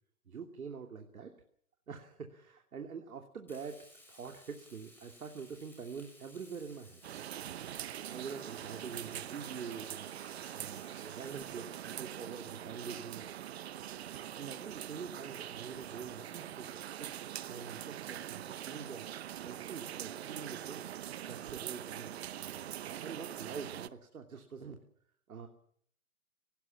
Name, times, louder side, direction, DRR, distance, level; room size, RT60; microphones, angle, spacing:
voice 1, 0.3-1.3 1.9-7.0 8.1-13.4 14.3-17.1 17.5-19.1 19.4-20.8 21.2-24.8 25.3-25.5, right 5 dB, 80° right, 4 dB, 3.0 m, -45 dB
Frying (food), 3.5-11.4, left 1 dB, 5° left, 6.7 m, -59 dB
sound 1, 7.0-23.9, right 11 dB, 45° right, 0.9 m, -43 dB
24.0 x 18.5 x 7.4 m, 0.63 s
hypercardioid pair, 145°, 43 cm